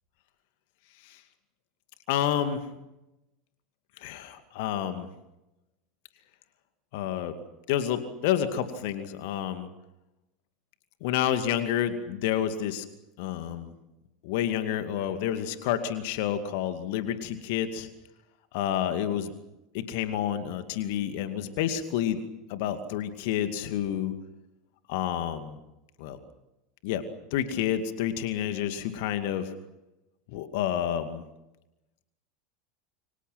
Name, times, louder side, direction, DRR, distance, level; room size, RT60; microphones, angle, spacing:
voice 1, 2.1-2.6 4.0-5.1 6.9-7.4 7.7-9.7 11.0-12.8 13.2-13.7 14.2-17.9 18.5-19.3 19.7-22.2 22.5-24.1 24.9-25.6 26.0-26.2 26.8-27.0 27.3-29.5 30.3-31.2, left 10 dB, 55° left, 9 dB, 2.3 m, -29 dB
28.5 x 25.5 x 6.0 m, 0.94 s
figure-of-eight pair, 80°, 0 cm